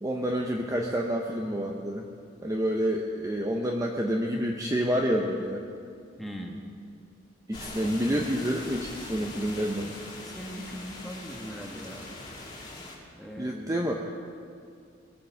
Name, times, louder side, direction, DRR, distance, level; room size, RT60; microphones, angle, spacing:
voice 1, 0.0-2.0 2.4-5.6 7.5-10.0 13.4-14.1, equal, 15° right, 1 dB, 0.8 m, -28 dB
voice 2, 6.2-6.6 7.8-8.3 10.1-12.1 13.2-13.8, equal, ahead, 0 dB, 1.5 m, -40 dB
sound 1, 7.5-13.0, left 2 dB, 20° left, 2.3 m, -42 dB
21.5 x 8.4 x 6.5 m, 2.3 s
head